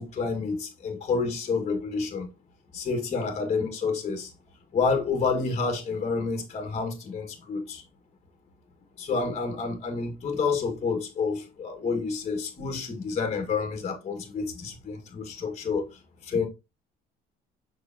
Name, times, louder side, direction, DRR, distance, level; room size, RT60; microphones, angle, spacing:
voice 1, 0.0-2.3 2.7-4.3 4.7-7.8 9.0-15.8 16.2-16.5, left 4 dB, 40° left, 1.8 m, -29 dB
6.8 x 5.7 x 2.8 m
cardioid pair, 110°, 17 cm